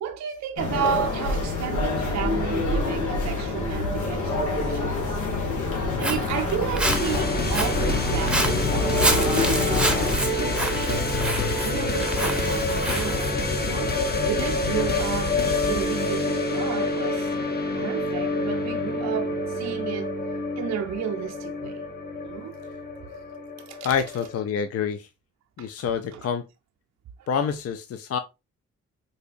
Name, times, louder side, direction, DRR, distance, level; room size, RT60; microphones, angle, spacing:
voice 1, 0.0-5.2 6.0-11.2 11.6-15.4 15.7-17.3 17.8-20.2 20.6-21.8 22.2-22.5 23.7-23.9 25.6-25.7 26.1-26.2 27.2-27.3, right 9 dB, 65° right, 0.5 m, -33 dB
sound 1, 0.6-10.2, left 2 dB, 85° left, 1.1 m, -27 dB
Walk footsteps, 5.7-13.3, right 1 dB, 5° right, 0.7 m, -29 dB
voice 2, 5.9-6.2 14.7-14.9 23.8-25.1 25.6-26.4 27.3-28.2, left 7 dB, 55° left, 0.4 m, -27 dB
sound 2, 6.8-24.4, left 2 dB, 35° left, 0.8 m, -27 dB
4.0 x 2.6 x 2.4 m
cardioid pair, 70°, 30 cm